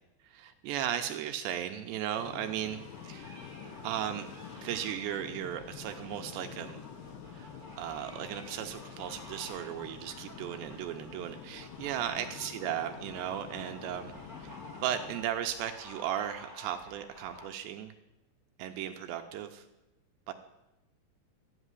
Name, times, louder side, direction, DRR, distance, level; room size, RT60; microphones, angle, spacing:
voice 1, 0.2-3.4 3.8-4.3 4.6-6.8 7.3-7.5 7.8-14.1 14.4-14.6 14.8-17.9 18.6-19.7 20.3-20.4, right 10 dB, 80° right, 7 dB, 2.8 m, -36 dB
sound 1, 2.2-15.2, left 8 dB, 80° left, 3.6 m, -48 dB
sound 2, 2.4-17.5, left 1 dB, 5° left, 2.6 m, -51 dB
13.5 x 8.2 x 9.7 m, 0.96 s
omnidirectional pair, 5.4 m